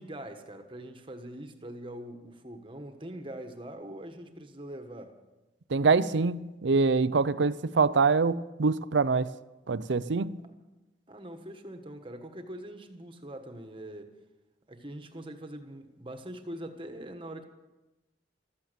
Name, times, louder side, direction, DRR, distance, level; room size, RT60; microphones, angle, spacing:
voice 1, 0.0-5.1 11.1-14.1 14.7-17.4, right 1 dB, 25° right, 1.4 m, -43 dB
voice 2, 5.7-9.3 9.7-10.4, right 4 dB, 75° right, 0.6 m, -25 dB
15.0 x 13.5 x 6.8 m
head